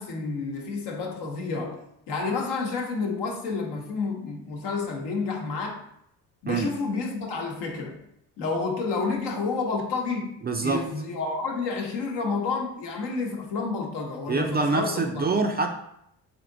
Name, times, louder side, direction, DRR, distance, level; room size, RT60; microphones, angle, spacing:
voice 1, 0.0-1.8 2.1-5.8 6.4-8.0 8.4-10.3 10.6-15.2, left 4 dB, 70° left, 1 dB, 1.0 m, -30 dB
voice 2, 10.4-10.9 14.3-15.7, right 3 dB, 25° right, 4 dB, 0.4 m, -25 dB
3.5 x 2.7 x 3.8 m, 0.76 s
supercardioid pair, 75°, 42 cm